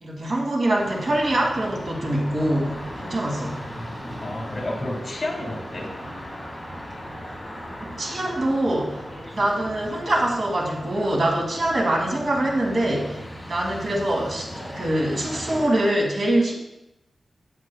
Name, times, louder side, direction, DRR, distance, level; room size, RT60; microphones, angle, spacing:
voice 1, 0.0-3.6 7.8-9.0 9.3-13.2 13.5-16.5, right 1 dB, 55° right, -2 dB, 1.9 m, -24 dB
sound 1, 0.7-15.7, equal, ahead, 2.0 m, -37 dB
voice 2, 3.5-5.9, left 1 dB, 35° left, -1 dB, 1.9 m, -32 dB
8.0 x 7.9 x 2.3 m, 0.90 s
wide cardioid pair, 90°, 0 cm